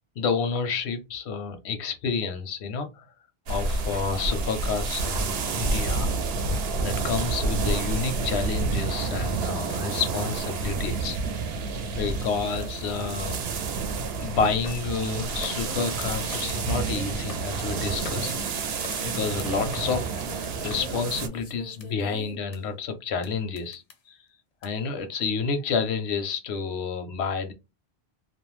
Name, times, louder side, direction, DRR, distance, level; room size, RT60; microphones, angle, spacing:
voice 1, 0.2-3.1 3.5-6.5 6.8-11.2 11.9-13.4 14.2-18.5 19.0-20.0 20.6-23.8 24.1-24.2 24.6-27.5, left 5 dB, 85° left, 0.9 m, -29 dB
sound 1, 3.5-21.3, right 4 dB, 75° right, 0.8 m, -29 dB
sound 2, 14.6-22.6 23.2-23.3 23.6-23.9 24.6-24.7, left 5 dB, 55° left, 0.4 m, -42 dB
2.5 x 2.0 x 3.0 m
omnidirectional pair, 1.1 m